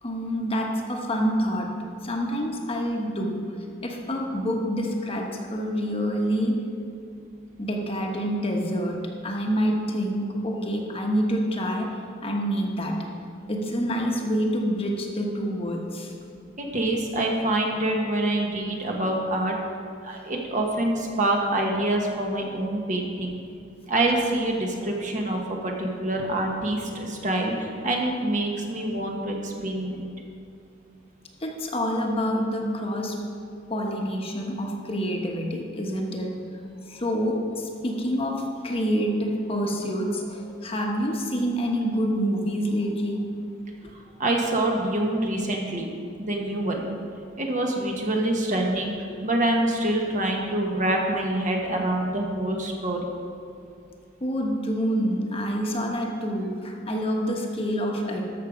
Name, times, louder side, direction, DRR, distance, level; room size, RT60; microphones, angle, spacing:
voice 1, 0.0-3.5 3.8-6.6 7.6-13.1 13.5-16.1 31.4-33.2 33.7-36.4 36.8-43.3 54.2-58.2, equal, 30° left, 1 dB, 1.1 m, -27 dB
voice 2, 16.6-19.6 20.0-23.3 23.9-30.1 43.9-45.9 46.2-46.8 47.4-48.9 49.2-53.1, right 1 dB, 40° right, 0 dB, 1.4 m, -26 dB
13.5 x 6.6 x 5.1 m, 2.5 s
head